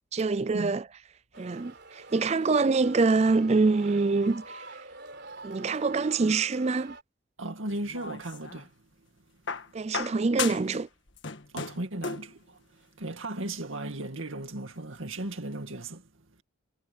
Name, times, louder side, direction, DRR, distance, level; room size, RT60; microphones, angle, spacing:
voice 1, 0.1-0.9 1.4-4.7 5.4-7.0 9.7-10.9, right 3 dB, 30° right, 0.4 m, -25 dB
sound 1, 1.3-7.0, right 3 dB, 55° right, 4.3 m, -46 dB
voice 2, 7.4-8.7 11.5-16.0, right 1 dB, 75° right, 2.2 m, -36 dB
sound 2, 7.7-8.7 9.5-10.8 11.1-12.3 13.4-13.5, left 5 dB, 60° left, 1.6 m, -35 dB
head